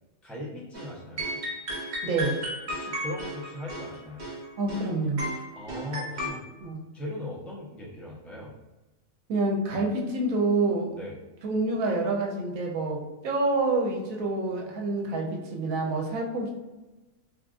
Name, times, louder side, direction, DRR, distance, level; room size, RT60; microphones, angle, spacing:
voice 1, 0.2-1.4 2.7-4.3 5.5-6.4 6.9-8.5 10.9-11.1, left 1 dB, ahead, -6 dB, 0.4 m, -39 dB
sound 1, 0.7-0.9 1.2-4.9 5.2-6.3, equal, 45° right, 0.6 m, -34 dB
voice 2, 2.0-2.4 4.6-5.2 6.6-6.8 9.3-11.0 11.4-16.5, right 2 dB, 90° right, 0 dB, 1.0 m, -27 dB
3.2 x 2.4 x 2.4 m, 1.1 s
omnidirectional pair, 1.4 m